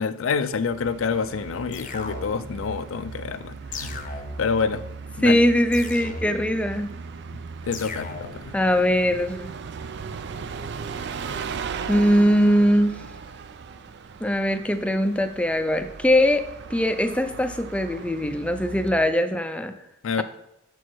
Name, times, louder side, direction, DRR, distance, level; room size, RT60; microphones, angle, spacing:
voice 1, 0.0-4.0 4.4-4.8 5.2-5.4 7.6-8.5 20.0-20.2, left 5 dB, 75° left, 13 dB, 0.4 m, -27 dB
Bus, 0.6-19.2, right 5 dB, 60° right, 0.4 m, -37 dB
sound 1, 1.7-2.6 3.7-4.6 5.7-6.6 7.7-8.6, left 4 dB, 40° left, 0.7 m, -37 dB
voice 2, 5.2-7.0 8.5-9.5 11.9-13.0 14.2-19.8, equal, 5° left, 8 dB, 0.4 m, -21 dB
7.0 x 4.6 x 4.5 m, 0.85 s
head